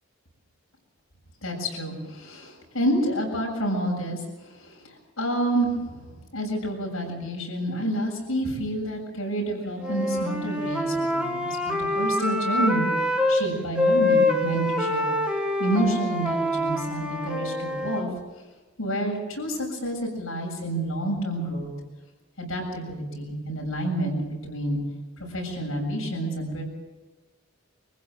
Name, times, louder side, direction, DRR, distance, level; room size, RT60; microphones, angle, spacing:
voice 1, 1.4-5.9 6.3-12.9 13.3-15.1 15.6-18.1 18.8-21.7 22.4-24.2 24.4-24.8 25.3-26.6, right 1 dB, 90° left, 1 dB, 7.4 m, -29 dB
Wind instrument woodwind instrument, 9.8-13.4 13.8-18.0, left 1 dB, 5° right, 2.1 m, -25 dB
25.0 x 15.5 x 7.6 m, 1.2 s
head